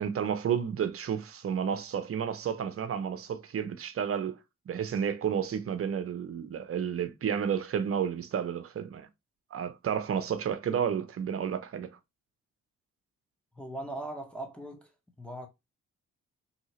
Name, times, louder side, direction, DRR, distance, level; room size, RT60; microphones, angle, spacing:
voice 1, 0.0-4.4 4.7-9.1 9.5-11.9, right 8 dB, 40° right, 0.6 m, -31 dB
voice 2, 13.5-14.9 15.2-15.5, right 1 dB, 5° left, 0.9 m, -39 dB
2.8 x 2.7 x 2.8 m
hypercardioid pair, 45°, 34 cm